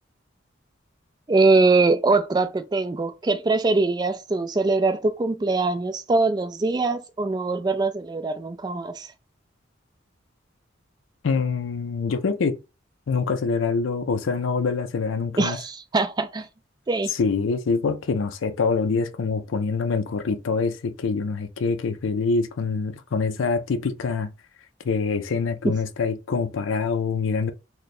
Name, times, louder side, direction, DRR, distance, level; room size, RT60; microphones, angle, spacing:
voice 1, 1.3-9.1 15.4-16.5 16.9-17.1 25.6-25.7, right 3 dB, 20° right, 0.3 m, -22 dB
voice 2, 11.2-12.6 13.1-15.6 17.1-24.3 24.8-27.5, left 4 dB, 80° left, 0.4 m, -25 dB
3.2 x 2.2 x 4.1 m
head